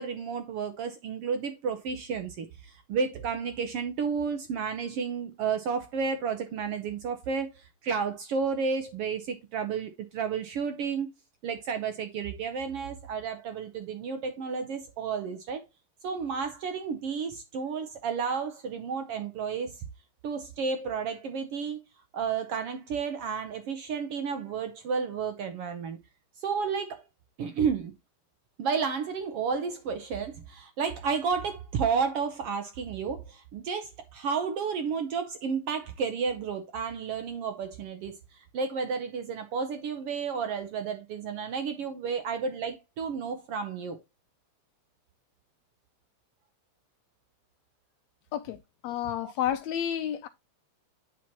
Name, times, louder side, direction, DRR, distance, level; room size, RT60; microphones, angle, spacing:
voice 1, 0.0-11.1 11.4-15.6 16.0-19.9 20.2-21.8 22.1-26.0 26.4-27.0 27.4-27.9 28.6-44.0 49.2-49.3, right 6 dB, 70° right, 1.5 m, -32 dB
voice 2, 48.8-50.3, left 10 dB, 80° left, 1.7 m, -30 dB
9.0 x 6.0 x 2.9 m
omnidirectional pair, 3.5 m